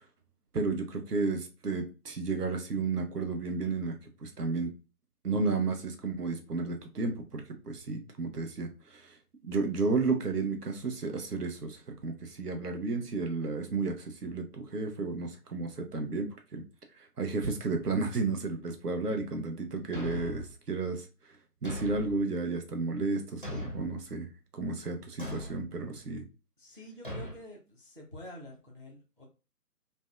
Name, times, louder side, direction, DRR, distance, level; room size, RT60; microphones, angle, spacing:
voice 1, 0.5-3.9 4.2-4.7 5.2-9.2 9.4-16.6 17.0-21.1 21.6-26.2, right 3 dB, 80° right, 4 dB, 0.8 m, -32 dB
Thump thud, 19.9-20.5 21.6-22.2 23.4-24.0 25.2-25.6 27.0-27.4, left 1 dB, 35° left, 0.4 m, -38 dB
voice 2, 26.6-29.2, left 1 dB, 35° right, 0 dB, 0.4 m, -48 dB
2.6 x 2.1 x 2.2 m, 0.31 s
figure-of-eight pair, 150°, 46 cm